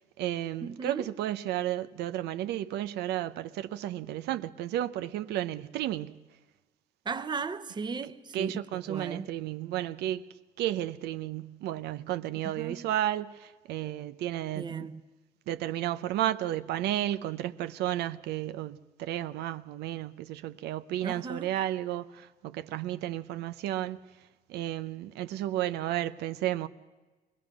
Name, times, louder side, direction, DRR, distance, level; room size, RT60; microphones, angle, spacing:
voice 1, 0.0-6.2 8.3-10.2 10.6-14.9 15.5-24.0 24.5-26.7, right 13 dB, 80° right, 0.7 m, -33 dB
voice 2, 0.6-1.1 7.0-9.3 12.5-12.9 14.5-15.0 21.0-21.5, right 5 dB, 25° right, 0.9 m, -36 dB
23.5 x 19.5 x 6.1 m
cardioid pair, 110°, 17 cm